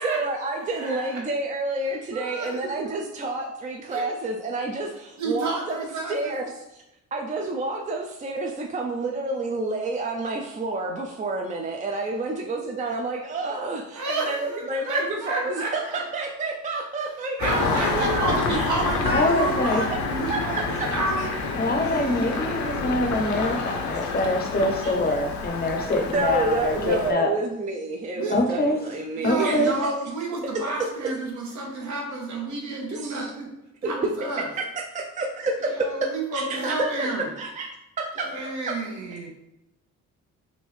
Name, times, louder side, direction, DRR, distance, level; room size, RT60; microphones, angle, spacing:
voice 1, 0.0-5.8 6.1-6.8 7.1-18.6 20.3-20.4 24.0-24.1 24.8-24.9 26.1-29.7 32.9-33.3 33.8-34.1 34.9-35.9 36.3-37.1 37.4-37.7 38.0-38.3, right 2 dB, 25° right, 0 dB, 0.4 m, -29 dB
voice 2, 0.7-1.2 2.1-2.9 3.9-4.1 5.2-6.3 12.1-12.2 13.9-16.0 17.4-21.3 21.7-22.4 28.1-28.4 29.1-33.5 33.8-34.5 35.7-37.3 38.2-39.3, right 3 dB, 70° right, 0 dB, 1.0 m, -30 dB
Engine starting, 17.4-27.1, left 4 dB, 70° left, 0.6 m, -28 dB
voice 3, 19.1-19.8 21.6-27.3 28.3-28.8 29.2-29.7, left 1 dB, 30° left, 3 dB, 0.6 m, -24 dB
3.6 x 2.5 x 3.1 m, 0.88 s
cardioid pair, 90°, 30 cm